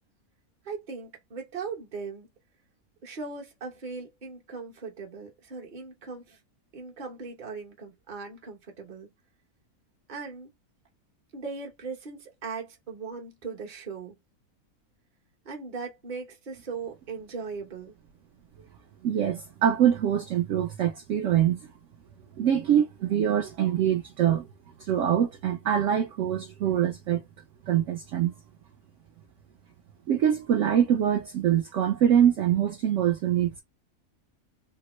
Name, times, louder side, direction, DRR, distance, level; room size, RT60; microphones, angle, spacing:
voice 1, 0.6-2.3 3.0-6.4 6.7-9.1 10.1-10.5 11.3-14.1 15.4-17.9, right 5 dB, 35° right, 0.9 m, -39 dB
voice 2, 19.0-21.7 22.4-24.5 24.8-27.2 27.7-28.3 30.1-33.6, right 10 dB, 65° right, 0.8 m, -24 dB
3.6 x 2.0 x 3.0 m
omnidirectional pair, 1.6 m